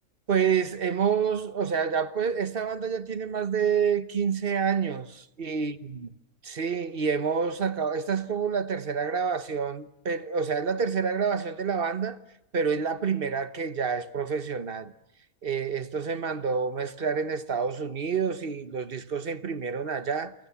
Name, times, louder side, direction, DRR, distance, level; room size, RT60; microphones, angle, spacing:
voice 1, 0.3-6.1 6.4-12.2 12.5-14.9 15.4-20.3, right 6 dB, 45° right, 1.2 m, -28 dB
29.5 x 23.0 x 7.1 m
omnidirectional pair, 1.4 m